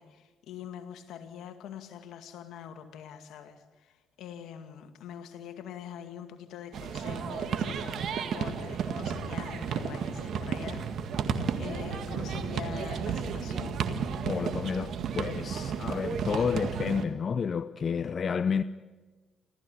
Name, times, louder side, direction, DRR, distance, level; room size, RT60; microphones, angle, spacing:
voice 1, 0.0-10.9 11.6-13.8, left 9 dB, 80° left, 2.1 m, -44 dB
sound 1, 6.7-17.1, right 6 dB, 70° right, 1.8 m, -33 dB
voice 2, 14.2-18.6, left 6 dB, 50° left, 0.6 m, -30 dB
28.5 x 14.5 x 9.4 m
cardioid pair, 75°, 0 cm